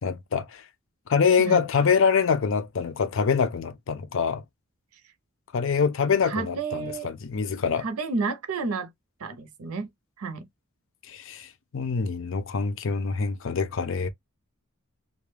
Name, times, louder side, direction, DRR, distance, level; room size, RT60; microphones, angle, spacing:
voice 1, 0.0-0.6 1.1-4.4 5.5-7.8 11.1-14.1, left 6 dB, 60° left, 0.5 m, -25 dB
voice 2, 6.2-7.1 7.8-8.9 9.2-9.9 10.2-10.5, right 4 dB, 85° right, 0.6 m, -31 dB
2.3 x 2.2 x 3.2 m
head